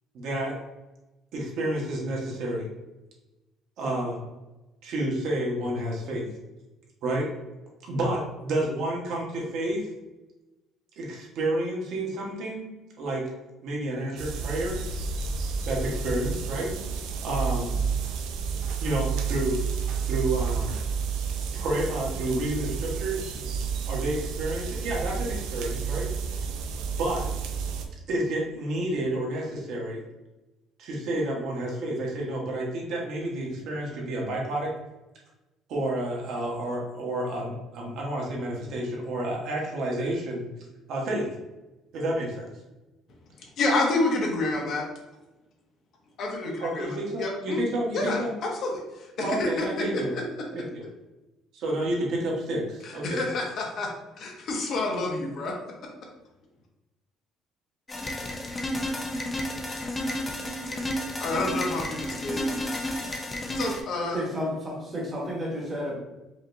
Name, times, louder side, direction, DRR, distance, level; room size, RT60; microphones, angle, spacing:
voice 1, 0.1-0.5 1.3-2.7 3.8-4.2 4.8-6.2 7.0-7.3 7.8-9.8 11.0-12.7 13.0-13.2 13.6-14.8 15.6-16.7 17.2-17.8 18.8-19.6 20.1-20.7 21.5-23.4 23.9-26.1 26.9-27.3 28.1-30.0 30.8-34.7 35.7-40.4 40.9-41.3 41.9-42.5 46.6-48.3 49.2-50.1 50.5-50.8 51.5-53.2, right 1 dB, 55° right, -2 dB, 1.2 m, -30 dB
sound 1, 14.2-27.8, right 6 dB, 90° right, 0.5 m, -30 dB
voice 2, 43.4-44.8 46.2-46.9 47.2-47.6 47.9-49.7 49.9-50.0 52.8-53.9 54.2-55.5 60.6-60.7 61.2-62.9 63.6-64.2, left 2 dB, 45° left, 0 dB, 0.8 m, -29 dB
sound 2, 57.9-63.8, left 1 dB, 15° left, 0.4 m, -31 dB
voice 3, 64.1-65.9, equal, 20° right, -2 dB, 1.0 m, -31 dB
4.9 x 2.9 x 2.6 m, 1.0 s
cardioid pair, 170°, 0 cm